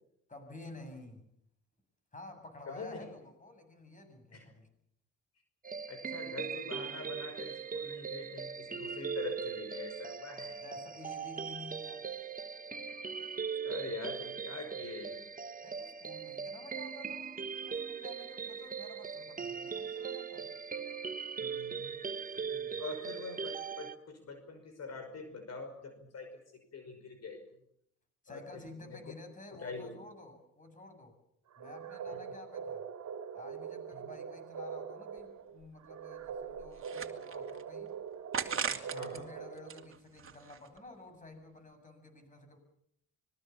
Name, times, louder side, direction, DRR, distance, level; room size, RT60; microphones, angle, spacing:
voice 1, 0.3-1.3 2.1-4.7 10.6-12.1 15.6-20.4 22.4-22.8 28.2-31.1 31.6-32.8 33.3-37.9 38.4-42.6, left 2 dB, 25° left, 7 dB, 7.5 m, -51 dB
voice 2, 2.7-3.0 4.3-4.5 5.9-10.6 13.6-15.2 21.4-22.0 22.8-27.4 28.3-29.1 29.5-30.0 33.9-34.1 38.9-39.2, left 4 dB, 55° left, 6 dB, 5.5 m, -44 dB
sound 1, 5.6-24.0, right 6 dB, 30° right, 1.5 m, -40 dB
sound 2, 31.5-39.9, right 7 dB, 60° right, 2.6 m, -43 dB
sound 3, 35.2-35.3 35.6-35.7 36.3-37.6 38.3-39.2 39.6-40.8, right 7 dB, 45° right, 2.6 m, -38 dB
25.5 x 22.0 x 7.2 m, 0.72 s
cardioid pair, 90°, 30 cm